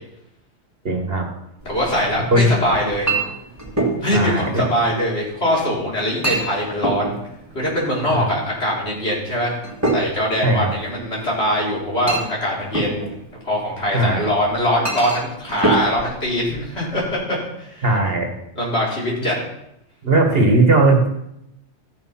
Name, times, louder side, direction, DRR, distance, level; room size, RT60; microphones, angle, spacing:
voice 1, 0.8-1.3 2.3-2.5 4.1-4.4 8.1-8.3 10.4-10.7 13.9-14.3 17.8-18.3 20.0-21.1, right 2 dB, 55° right, 2 dB, 1.9 m, -17 dB
Chink clink, 1.6-17.1, right 2 dB, 15° right, 1.9 m, -28 dB
voice 2, 1.7-3.1 4.0-7.1 7.5-9.5 9.9-13.0 13.4-18.1 18.6-19.4, equal, 60° left, -5 dB, 3.9 m, -22 dB
14.0 x 6.6 x 5.7 m, 0.82 s
omnidirectional pair, 1.2 m